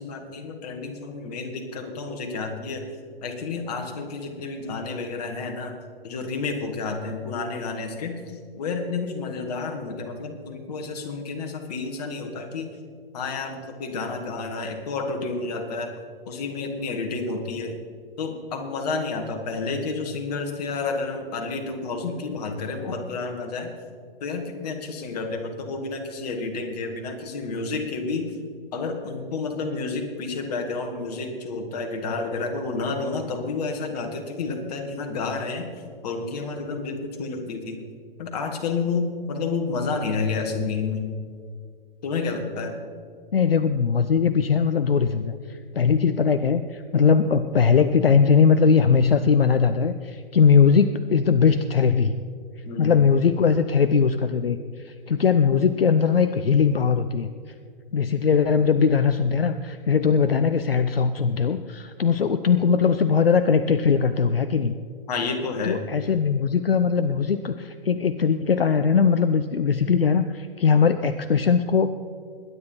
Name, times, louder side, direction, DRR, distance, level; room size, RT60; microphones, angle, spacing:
voice 1, 0.0-2.8 3.2-5.8 6.0-8.1 8.6-12.7 13.1-15.9 16.3-17.8 18.2-23.7 24.2-28.3 28.7-35.7 36.0-37.8 38.2-41.1 42.0-42.8 52.6-52.9 65.1-65.8, left 4 dB, 40° left, 4 dB, 2.1 m, -30 dB
voice 2, 43.3-52.2 52.8-54.6 54.8-57.3 57.9-64.8 65.6-71.9, left 6 dB, 70° left, 10 dB, 0.6 m, -20 dB
21.5 x 9.9 x 4.5 m, 2.2 s
figure-of-eight pair, 115°, 30 cm